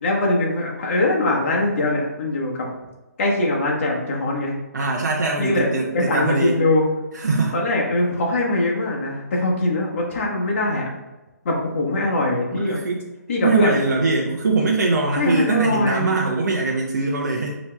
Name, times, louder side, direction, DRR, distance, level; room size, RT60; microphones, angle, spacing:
voice 1, 0.0-2.7 3.2-4.5 5.4-5.7 5.9-6.8 7.5-10.8 11.4-12.8 13.3-13.8 15.2-16.2, left 2 dB, 45° left, -2 dB, 1.1 m, -22 dB
voice 2, 4.7-6.6 7.1-7.6 12.5-13.0 13.4-17.5, right 3 dB, 80° right, -2 dB, 0.7 m, -22 dB
5.6 x 3.0 x 2.2 m, 1.1 s
hypercardioid pair, 160°, 9 cm